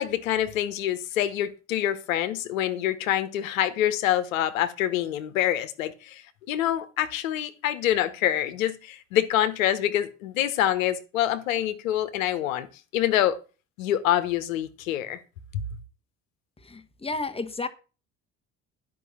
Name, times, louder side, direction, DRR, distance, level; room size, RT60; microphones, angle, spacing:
voice 1, 0.0-12.7 12.9-13.4 13.8-15.2, left 12 dB, 80° left, 1.2 m, -26 dB
voice 2, 16.7-17.7, left 3 dB, 15° left, 1.5 m, -32 dB
11.0 x 5.7 x 7.0 m
hypercardioid pair, 60°, 40 cm